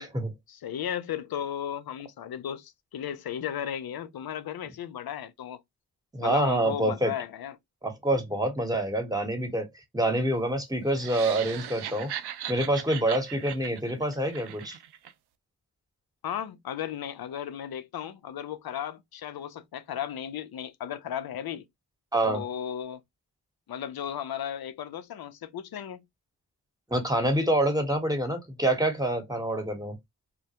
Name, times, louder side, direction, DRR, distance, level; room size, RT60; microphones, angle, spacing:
voice 1, 0.5-5.6 6.2-7.6 16.2-21.6 22.2-23.0 23.7-26.0, left 9 dB, 60° left, 0.6 m, -35 dB
voice 2, 6.1-7.1 7.8-9.7 9.9-12.1 12.5-14.8 22.1-22.4 26.9-30.0, right 1 dB, 10° right, 1.1 m, -26 dB
sound 1, 10.9-15.1, right 10 dB, 70° right, 0.5 m, -38 dB
2.2 x 2.1 x 2.8 m
cardioid pair, 40°, 41 cm